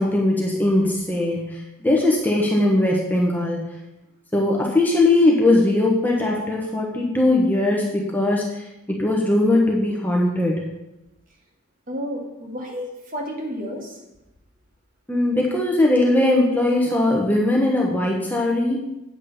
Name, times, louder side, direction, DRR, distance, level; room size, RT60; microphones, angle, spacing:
voice 1, 0.0-3.7 4.3-10.6 15.1-18.8, left 2 dB, 10° left, -2 dB, 1.1 m, -20 dB
voice 2, 11.9-14.0, equal, 40° right, 0 dB, 2.2 m, -31 dB
8.7 x 6.2 x 7.1 m, 0.93 s
head